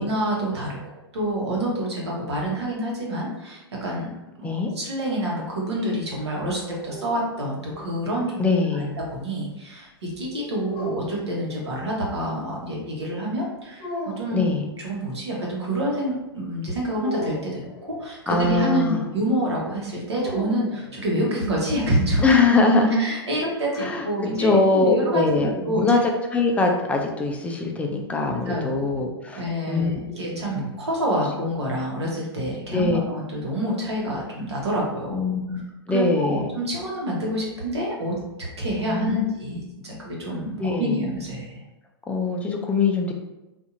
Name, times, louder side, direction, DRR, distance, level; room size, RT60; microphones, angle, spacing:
voice 1, 0.0-4.1 4.4-8.4 8.7-13.9 14.2-14.5 14.8-17.6 17.9-22.2 22.9-25.8 28.5-28.9 29.3-35.2 35.5-35.6 35.9-38.1 38.6-41.6, equal, 80° right, -3 dB, 1.1 m, -27 dB
sound 1, 6.4-8.3 10.7-12.0 13.8-14.6 17.0-18.1 20.1-21.3, equal, 35° left, 0.8 m, -36 dB
voice 2, 8.4-9.0 14.3-14.7 18.3-19.1 22.2-23.0 23.8-24.1 24.4-30.7 32.7-33.0 35.1-36.5 38.9-39.2 40.6-41.0 42.1-43.1, left 3 dB, 10° left, 2 dB, 0.4 m, -22 dB
2.7 x 2.5 x 2.5 m, 1.0 s
hypercardioid pair, 110°, 14 cm